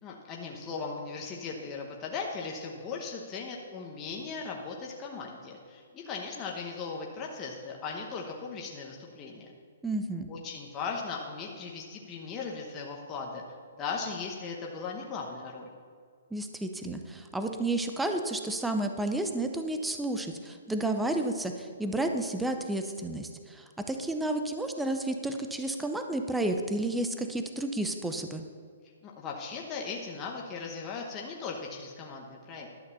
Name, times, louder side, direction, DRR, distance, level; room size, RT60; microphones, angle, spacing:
voice 1, 0.0-9.5 10.3-13.4 13.8-15.7 29.0-32.7, left 4 dB, 20° left, -1 dB, 1.0 m, -38 dB
voice 2, 9.8-10.3 16.3-28.4, right 2 dB, 5° right, 6 dB, 0.6 m, -31 dB
11.5 x 6.5 x 6.9 m, 2.1 s
hypercardioid pair, 160°, 0 cm